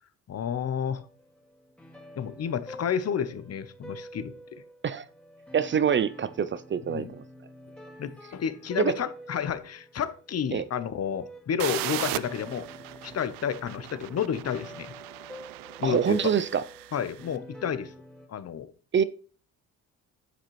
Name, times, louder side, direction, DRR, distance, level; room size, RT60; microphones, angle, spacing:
voice 1, 0.3-1.0 2.2-4.6 6.9-7.1 8.0-12.7 13.0-14.9 15.8-16.2 16.9-17.9 18.3-18.7, left 8 dB, 45° left, 0.9 m, -31 dB
sound 1, 0.8-18.3, right 1 dB, 5° left, 2.2 m, -47 dB
voice 2, 5.5-7.2 8.8-8.9 10.5-10.6 15.8-16.6 18.9-19.0, right 7 dB, 35° right, 0.5 m, -25 dB
sound 2, 11.6-17.3, right 16 dB, 85° right, 0.5 m, -38 dB
9.7 x 6.5 x 3.2 m
cardioid pair, 85°, 34 cm